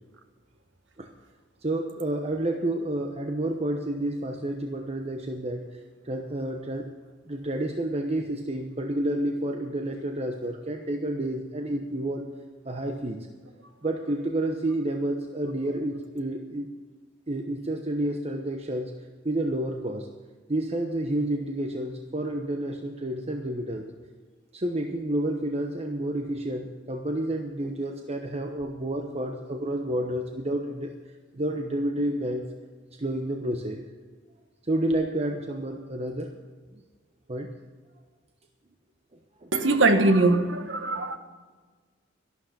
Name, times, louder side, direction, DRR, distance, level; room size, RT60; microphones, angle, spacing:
voice 1, 1.6-5.7 6.0-6.9 7.3-12.3 12.6-13.2 13.8-16.7 17.3-18.9 19.2-20.1 20.5-23.9 24.5-30.9 31.3-32.5 33.0-33.8 34.6-36.3 37.3-37.5 39.4-39.5, right 1 dB, 35° right, 1.0 m, -30 dB
voice 2, 39.5-41.2, right 2 dB, 70° right, 1.3 m, -21 dB
12.5 x 11.5 x 5.9 m
head